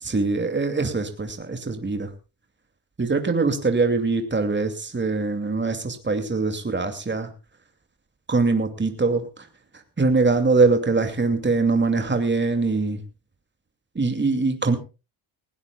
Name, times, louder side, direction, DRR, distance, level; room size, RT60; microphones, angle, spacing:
voice 1, 0.0-2.1 3.0-7.3 8.3-9.5 10.0-13.0 13.9-14.8, right 3 dB, 20° right, 6 dB, 2.6 m, -23 dB
19.5 x 18.0 x 2.4 m, 0.31 s
cardioid pair, 100°, 50 cm